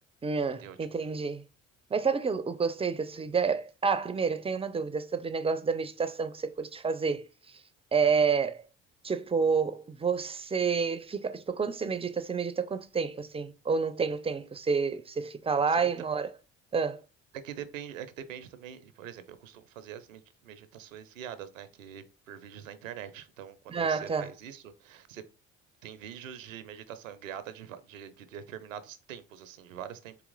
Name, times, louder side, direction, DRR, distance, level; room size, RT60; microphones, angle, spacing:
voice 1, 0.2-1.4 1.9-7.6 7.9-8.6 9.0-16.3 16.7-17.0 23.7-24.3, right 5 dB, 15° right, 0.4 m, -29 dB
voice 2, 15.7-16.1 17.3-25.2 25.8-30.2, right 9 dB, 85° right, 0.6 m, -44 dB
4.1 x 2.9 x 3.8 m
hypercardioid pair, 55°, 38 cm